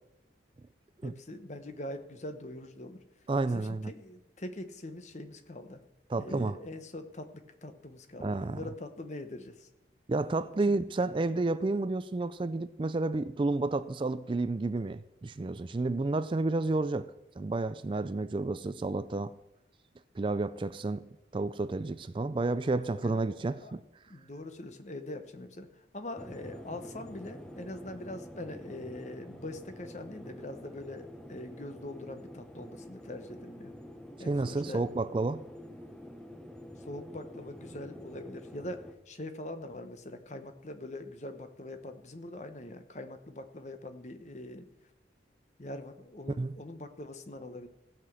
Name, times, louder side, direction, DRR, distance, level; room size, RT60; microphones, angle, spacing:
voice 1, 1.0-3.0 3.4-5.8 6.2-9.7 10.7-10.8 23.0-23.7 24.1-33.7 34.2-35.0 36.9-44.7 45.6-47.7, left 1 dB, 40° left, 1.0 m, -43 dB
voice 2, 3.3-3.9 6.1-6.6 8.2-8.7 10.1-17.1 17.4-19.3 20.2-21.1 21.3-23.8 34.2-35.4 46.4-46.6, right 2 dB, 25° right, 0.3 m, -31 dB
sound 1, 26.2-38.9, equal, 5° left, 0.7 m, -47 dB
16.0 x 6.0 x 7.6 m
head